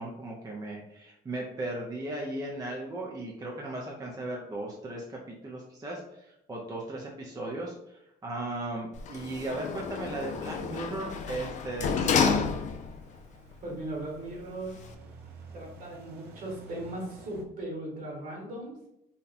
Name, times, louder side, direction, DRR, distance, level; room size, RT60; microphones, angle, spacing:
voice 1, 0.0-12.5, right 2 dB, 20° right, -2 dB, 0.5 m, -37 dB
Sliding door, 8.9-13.1 13.5-13.6, left 6 dB, 45° left, 0.4 m, -30 dB
sound 1, 12.5-17.4, right 2 dB, 75° right, 0.6 m, -50 dB
voice 2, 13.6-14.8 15.5-18.7, right 1 dB, 55° right, -2 dB, 1.5 m, -38 dB
2.8 x 2.2 x 4.0 m, 0.82 s
cardioid pair, 110°, 17 cm